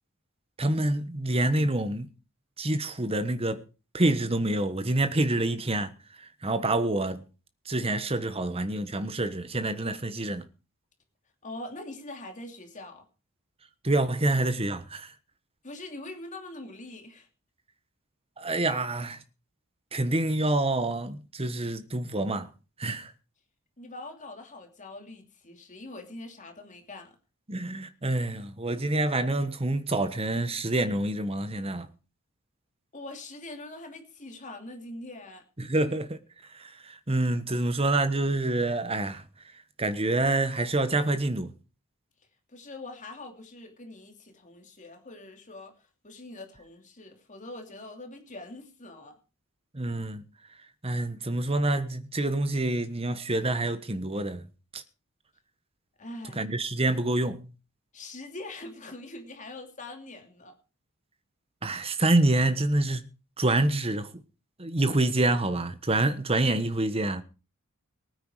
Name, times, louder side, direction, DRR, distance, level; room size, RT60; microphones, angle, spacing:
voice 1, 0.6-2.1 2.6-3.6 3.9-5.9 6.4-7.2 7.7-10.4 13.8-15.1 18.4-19.2 19.9-22.5 22.8-23.1 27.5-31.9 35.6-36.2 36.5-39.2 39.8-41.5 49.7-50.2 50.8-54.5 54.7-54.8 56.4-57.5 61.6-63.0 63.4-64.1 64.6-67.2, right 2 dB, 25° right, 1.3 m, -27 dB
voice 2, 11.4-13.1 15.6-17.3 23.8-27.2 32.9-35.4 42.5-49.1 56.0-56.4 57.9-60.6, left 2 dB, 35° left, 2.8 m, -43 dB
19.0 x 9.5 x 4.9 m
head